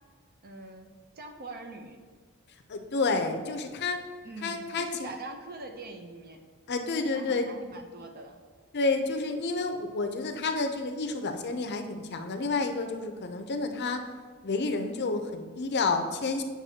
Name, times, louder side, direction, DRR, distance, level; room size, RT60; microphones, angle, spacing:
voice 1, 0.4-2.0 4.2-6.4 7.1-8.4, right 2 dB, 45° right, 4 dB, 0.7 m, -43 dB
voice 2, 2.7-4.0 4.4-5.1 6.7-7.5 8.7-14.0 14.4-16.4, left 3 dB, 50° left, 6 dB, 0.6 m, -30 dB
8.6 x 5.9 x 2.8 m, 1.5 s
head